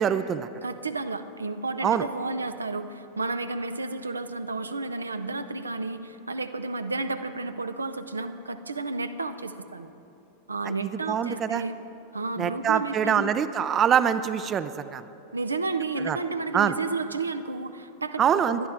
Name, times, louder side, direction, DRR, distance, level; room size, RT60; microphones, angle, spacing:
voice 1, 0.0-0.5 1.8-2.0 11.1-11.6 12.4-15.0 16.0-16.2 16.5-16.7 18.2-18.7, right 8 dB, 25° right, 13 dB, 0.4 m, -24 dB
voice 2, 0.6-9.9 10.5-11.7 12.1-13.3 15.3-18.7, right 3 dB, 80° right, 9 dB, 0.5 m, -32 dB
19.5 x 11.5 x 3.5 m, 2.8 s
figure-of-eight pair, 90°, 0 cm